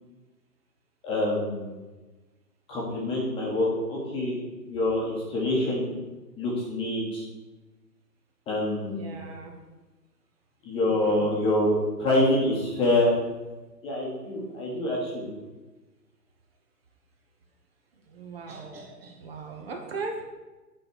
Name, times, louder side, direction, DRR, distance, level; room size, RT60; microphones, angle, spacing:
voice 1, 1.0-1.7 2.7-4.4 4.7-5.9 6.4-7.2 8.5-9.2 10.6-13.1 13.8-15.3, left 1 dB, 10° left, -4 dB, 1.2 m, -26 dB
voice 2, 8.9-9.5 10.9-11.4 17.9-20.2, right 4 dB, 35° right, 2 dB, 1.1 m, -39 dB
8.8 x 4.2 x 6.2 m, 1.2 s
hypercardioid pair, 145°, 49 cm